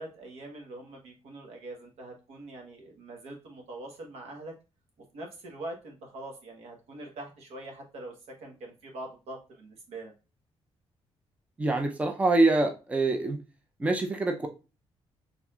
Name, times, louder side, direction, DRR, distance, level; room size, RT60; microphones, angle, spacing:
voice 1, 0.0-4.5 5.1-10.1, right 2 dB, 90° right, 2 dB, 1.2 m, -43 dB
voice 2, 11.6-13.4 13.8-14.5, right 2 dB, 15° right, 4 dB, 0.5 m, -25 dB
4.5 x 3.5 x 2.4 m, 0.30 s
cardioid pair, 155°, 10 cm